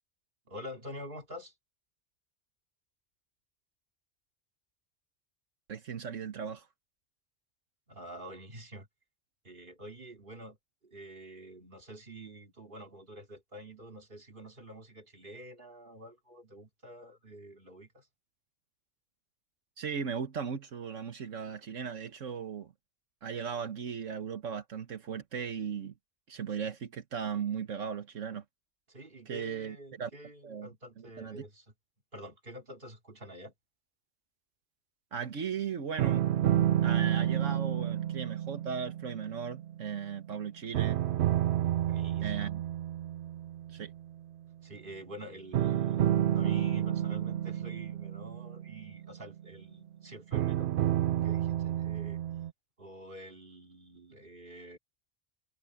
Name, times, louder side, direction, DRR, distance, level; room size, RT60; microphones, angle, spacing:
voice 1, 0.5-1.5 7.9-8.9 9.4-10.6 10.8-18.1 28.9-31.6 32.1-33.5 41.9-42.5 44.6-52.2 52.8-54.8, right 1 dB, 40° right, 3.1 m, -48 dB
voice 2, 5.7-6.7 19.8-22.7 23.2-25.9 26.3-28.4 29.3-30.1 30.4-30.7 31.0-31.4 35.1-36.2 36.8-41.0 42.2-42.6 43.7-43.9, right 7 dB, 80° right, 1.6 m, -37 dB
sound 1, 36.0-40.3 40.7-44.0 45.5-49.5 50.3-52.5, right 11 dB, 65° right, 0.9 m, -30 dB
omnidirectional pair, 1.3 m